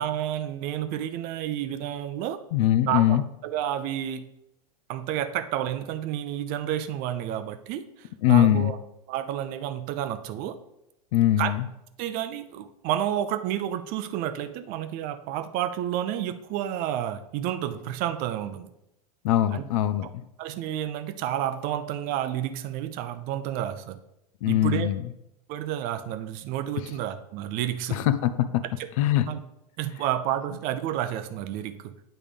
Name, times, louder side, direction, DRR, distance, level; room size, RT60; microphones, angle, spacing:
voice 1, 0.0-2.4 2.9-4.2 4.9-8.8 9.1-10.6 11.4-11.5 12.0-18.7 19.5-19.6 20.0-20.1 20.4-24.0 24.5-24.9 25.5-28.0 28.8-28.9 29.3-29.4 29.8-31.9, right 11 dB, 45° right, 11 dB, 0.7 m, -30 dB
voice 2, 2.5-3.2 8.2-8.7 11.1-11.6 19.2-20.1 24.4-25.0 27.9-28.6 29.0-29.3, left 13 dB, 60° left, 13 dB, 0.6 m, -22 dB
9.0 x 3.6 x 5.1 m, 0.86 s
hypercardioid pair, 100°, 20 cm